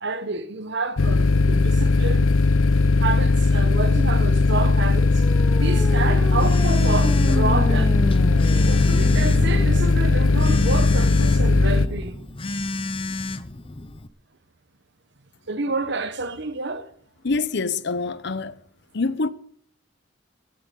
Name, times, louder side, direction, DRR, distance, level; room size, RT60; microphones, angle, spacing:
voice 1, 0.0-2.3 3.0-5.2 5.6-8.0 8.6-12.2 15.5-16.9, right 3 dB, 60° right, 1.2 m, -29 dB
sound 1, 1.0-11.9, left 3 dB, 90° left, 0.6 m, -18 dB
sound 2, 5.0-12.1, equal, 5° left, 1.9 m, -31 dB
Telephone, 5.6-14.1, left 2 dB, 25° left, 0.7 m, -32 dB
voice 2, 17.2-18.5 18.9-19.3, left 3 dB, 60° left, 0.8 m, -25 dB
15.5 x 7.8 x 9.9 m
head